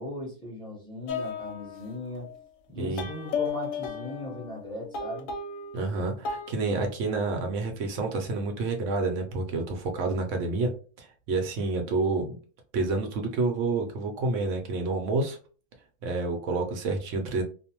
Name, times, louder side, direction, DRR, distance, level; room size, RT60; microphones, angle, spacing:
voice 1, 0.0-2.3 2.7-5.3, left 1 dB, 5° left, -4 dB, 0.7 m, -38 dB
sound 1, 1.1-2.4 3.0-5.9 6.3-6.5, left 5 dB, 70° left, 0.9 m, -35 dB
voice 2, 5.7-10.7 11.0-12.4 12.7-15.4 16.0-17.4, right 3 dB, 65° right, 4 dB, 0.8 m, -29 dB
2.5 x 2.1 x 2.8 m, 0.38 s
omnidirectional pair, 1.6 m